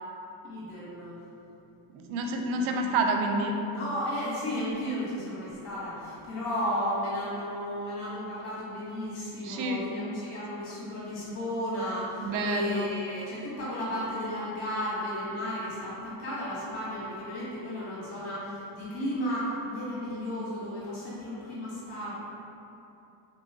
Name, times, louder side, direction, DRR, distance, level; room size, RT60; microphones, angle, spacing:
voice 1, 0.4-1.2 3.7-22.1, equal, 80° left, -8 dB, 1.4 m, -34 dB
voice 2, 1.9-3.6 9.4-9.8 12.2-12.9, right 2 dB, 70° right, 3 dB, 0.6 m, -28 dB
3.6 x 2.8 x 2.8 m, 2.9 s
supercardioid pair, 80°, 50 cm